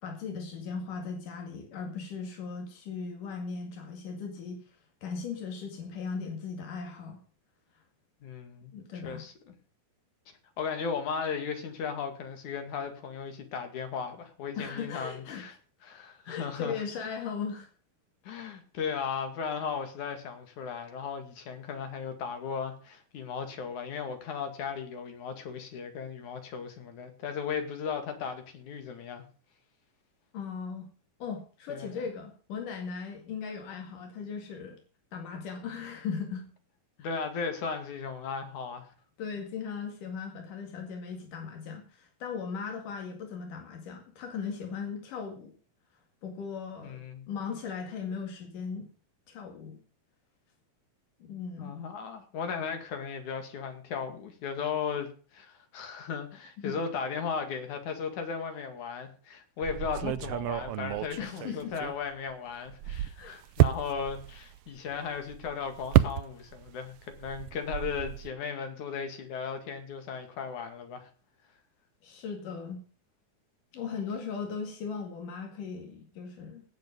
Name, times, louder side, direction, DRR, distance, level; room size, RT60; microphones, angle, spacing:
voice 1, 0.0-7.2 8.7-9.3 14.6-15.5 16.3-17.7 30.3-30.9 31.2-34.8 35.1-36.5 39.2-45.5 46.2-48.9 49.3-49.8 51.2-51.8 56.6-56.8 61.2-61.7 63.1-63.4 72.0-72.8 73.7-76.6, left 5 dB, 85° left, 3.8 m, -38 dB
voice 2, 8.2-8.7 9.0-9.3 10.6-15.6 15.8-17.1 18.2-29.2 31.7-32.0 37.0-38.9 46.8-47.3 51.6-71.1, left 6 dB, 70° left, 3.5 m, -36 dB
sound 1, 59.6-62.3 62.7-66.7 67.0-68.3, right 14 dB, 85° right, 1.4 m, -30 dB
18.0 x 7.8 x 5.3 m
omnidirectional pair, 3.6 m